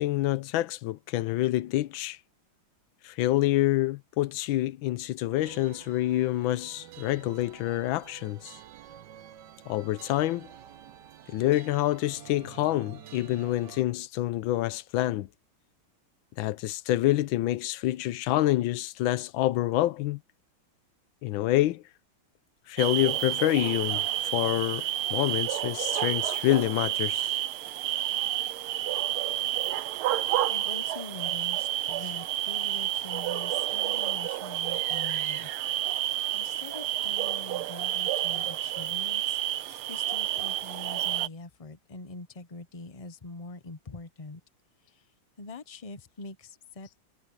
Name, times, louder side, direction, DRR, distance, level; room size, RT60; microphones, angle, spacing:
voice 1, 0.0-2.2 3.0-8.5 9.7-10.5 11.3-15.3 16.4-20.2 21.2-21.8 22.7-24.1 24.3-27.4, left 15 dB, 75° left, 1.4 m, -27 dB
sound 1, 5.4-13.8, right 11 dB, 65° right, 1.4 m, -49 dB
sound 2, 22.8-41.3, right 13 dB, 90° right, 1.6 m, -30 dB
voice 2, 30.5-35.5 35.9-39.4 39.7-44.4 44.8-45.1 45.4-47.0, left 3 dB, 25° left, 0.7 m, -44 dB
omnidirectional pair, 2.3 m